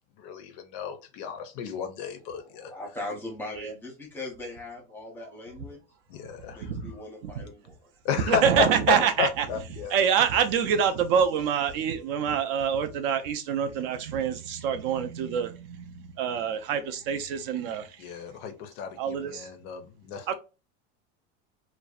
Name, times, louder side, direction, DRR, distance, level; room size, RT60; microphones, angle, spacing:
voice 1, 0.2-2.7 6.1-6.7 8.0-10.0 18.0-20.3, left 7 dB, 45° left, 0.4 m, -32 dB
voice 2, 2.3-5.8 6.5-7.8, left 2 dB, 5° left, 0.6 m, -40 dB
voice 3, 6.6-6.9 7.2-7.4 8.3-9.5 9.9-18.1 19.0-19.5 20.3-20.4, right 8 dB, 60° right, 0.5 m, -26 dB
2.6 x 2.1 x 2.3 m
supercardioid pair, 160°, 32 cm